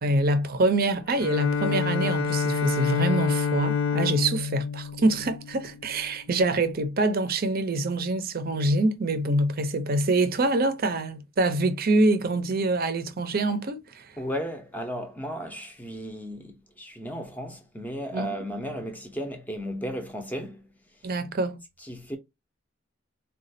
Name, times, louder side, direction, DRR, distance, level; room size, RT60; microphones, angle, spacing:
voice 1, 0.0-14.1 18.1-18.3 21.0-21.6, right 2 dB, 45° right, 0.5 m, -25 dB
Bowed string instrument, 1.1-6.0, left 6 dB, 80° left, 0.6 m, -28 dB
voice 2, 14.2-20.7 21.8-22.2, equal, 10° left, 0.6 m, -35 dB
4.0 x 2.2 x 2.6 m
head